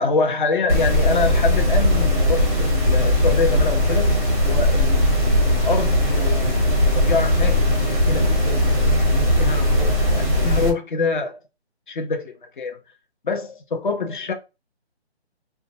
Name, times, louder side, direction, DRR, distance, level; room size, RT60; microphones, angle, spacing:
voice 1, 0.0-11.4 11.9-12.8 13.2-14.3, left 4 dB, 45° left, 0.7 m, -26 dB
sound 1, 0.7-10.7, left 1 dB, 15° right, 0.6 m, -19 dB
2.5 x 2.2 x 2.6 m
hypercardioid pair, 160°, 34 cm